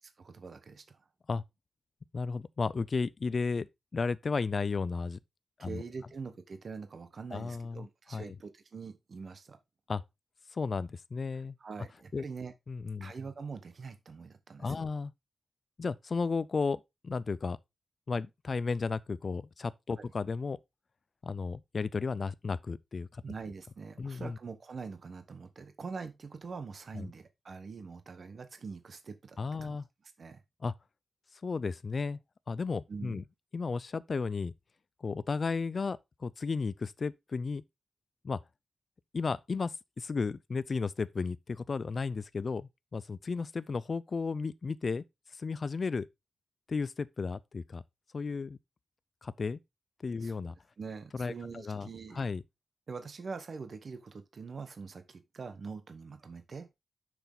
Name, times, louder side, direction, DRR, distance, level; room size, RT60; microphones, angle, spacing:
voice 1, 0.0-1.0 5.6-9.6 11.6-12.5 13.0-14.8 20.0-20.1 23.2-29.8 30.2-30.4 32.9-33.2 50.2-50.4 50.8-52.3 52.9-56.7, right 5 dB, 45° right, 1.0 m, -44 dB
voice 2, 2.1-3.7 3.9-5.2 5.6-5.8 7.3-7.9 8.1-8.3 9.9-10.0 10.5-11.6 12.1-12.2 12.7-13.1 14.6-15.1 15.8-17.6 18.1-20.6 21.2-23.2 24.0-24.4 27.0-27.1 29.4-29.9 30.6-30.7 31.4-32.2 32.5-33.2 33.5-34.5 35.0-37.6 38.2-38.4 39.1-45.0 45.3-46.1 46.7-47.8 48.1-48.6 49.2-49.6 50.0-50.5 51.2-51.9 52.1-52.4, left 4 dB, 40° left, 0.4 m, -34 dB
6.9 x 6.2 x 3.9 m
wide cardioid pair, 145°, 0 cm